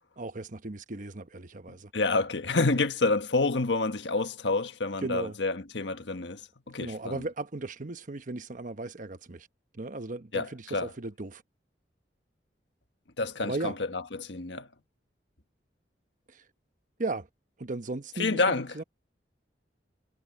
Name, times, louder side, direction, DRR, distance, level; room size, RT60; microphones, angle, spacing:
voice 1, 0.2-1.9 2.7-2.9 5.0-5.4 6.8-9.5 9.7-11.4 13.4-13.8 16.3-16.4 17.0-17.3 17.6-18.8, right 2 dB, 50° right, 1.0 m, -36 dB
voice 2, 1.9-6.4 6.7-7.2 10.3-10.9 13.2-14.7 18.2-18.8, left 3 dB, 90° left, 1.4 m, -28 dB
head